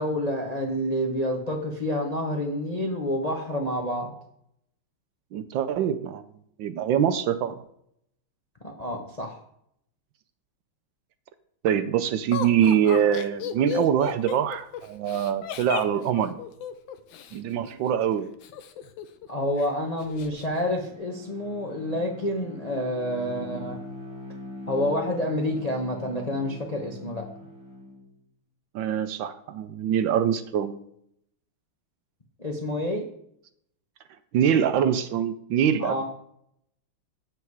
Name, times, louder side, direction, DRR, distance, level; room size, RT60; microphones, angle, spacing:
voice 1, 0.0-4.1 8.6-9.4 19.3-23.8 24.7-27.2 32.4-33.0 35.8-36.0, left 1 dB, 35° left, 1 dB, 0.6 m, -28 dB
voice 2, 5.3-6.2 6.6-7.6 11.6-16.4 17.3-18.3 28.7-30.8 34.3-36.0, right 9 dB, 70° right, 11 dB, 1.2 m, -24 dB
Laughter, 12.3-17.4 18.4-19.3 19.6-19.7 20.0-20.5, left 8 dB, 70° left, 1.4 m, -34 dB
Bowed string instrument, 20.4-28.1, left 1 dB, 15° right, 1.4 m, -41 dB
8.1 x 7.9 x 4.7 m, 0.72 s
omnidirectional pair, 2.3 m